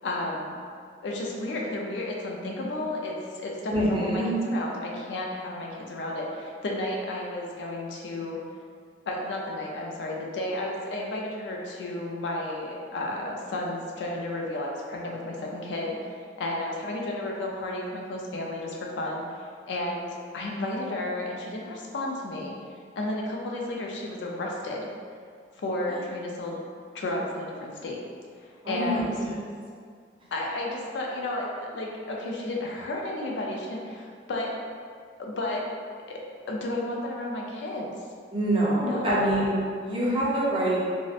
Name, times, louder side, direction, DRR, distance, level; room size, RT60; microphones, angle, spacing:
voice 1, 0.0-0.6 1.0-8.4 9.1-22.6 23.0-24.9 25.6-26.6 26.9-28.0 28.4-29.2 30.3-34.5 35.2-35.7 36.1-36.2 36.5-37.9 38.8-39.2, left 1 dB, 90° left, -1 dB, 0.4 m, -32 dB
voice 2, 3.7-4.3 28.6-29.3 38.3-39.5 39.8-40.8, right 1 dB, 30° right, -6 dB, 0.4 m, -25 dB
2.6 x 2.1 x 2.4 m, 2.1 s
head